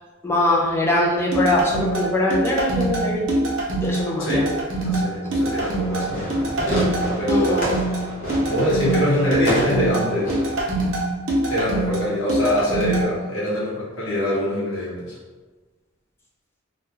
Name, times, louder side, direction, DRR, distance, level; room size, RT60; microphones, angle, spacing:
voice 1, 0.2-3.4 3.8-4.4 7.3-7.7, left 1 dB, 10° left, -4 dB, 0.4 m, -22 dB
sound 1, 1.3-13.0, right 1 dB, 70° right, 0.7 m, -24 dB
voice 2, 4.8-6.5 7.2-7.6 8.5-10.4 11.5-15.2, left 1 dB, 75° left, -7 dB, 0.9 m, -24 dB
Fireworks, 5.5-10.6, equal, 45° left, 0.8 m, -29 dB
2.2 x 2.2 x 2.9 m, 1.3 s
head